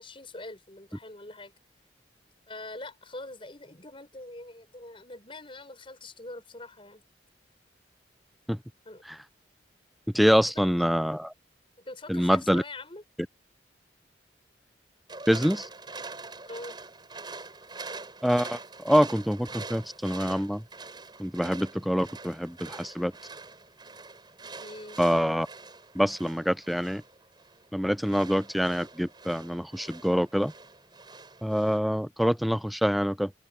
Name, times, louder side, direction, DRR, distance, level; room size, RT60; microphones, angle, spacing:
voice 1, 0.0-1.5 2.5-7.0 8.9-9.0 11.8-13.0 16.4-16.8 24.6-25.0, left 2 dB, 30° left, 5.8 m, -43 dB
voice 2, 10.1-11.3 12.1-12.6 15.3-15.7 18.2-20.6 21.2-23.1 25.0-25.5 25.9-27.0 27.7-30.5 31.4-33.3, equal, ahead, 0.4 m, -25 dB
sound 1, 15.1-31.8, right 3 dB, 25° right, 6.1 m, -44 dB
head